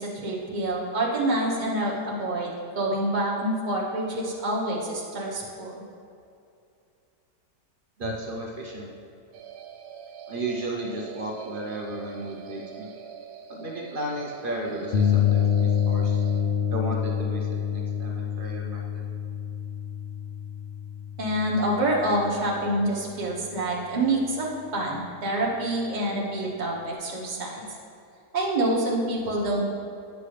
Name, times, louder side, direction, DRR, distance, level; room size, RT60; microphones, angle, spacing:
voice 1, 0.0-5.8 21.2-27.6 28.3-29.6, right 1 dB, 30° right, -3 dB, 1.0 m, -27 dB
voice 2, 8.0-8.9 10.3-12.9 13.5-16.2 16.7-19.0, right 1 dB, 55° right, -1 dB, 0.6 m, -34 dB
sound 1, 9.3-16.4, right 8 dB, 75° right, 1.1 m, -44 dB
sound 2, 14.9-22.7, left 8 dB, 65° left, 0.6 m, -27 dB
9.3 x 5.8 x 3.3 m, 2.5 s
omnidirectional pair, 1.7 m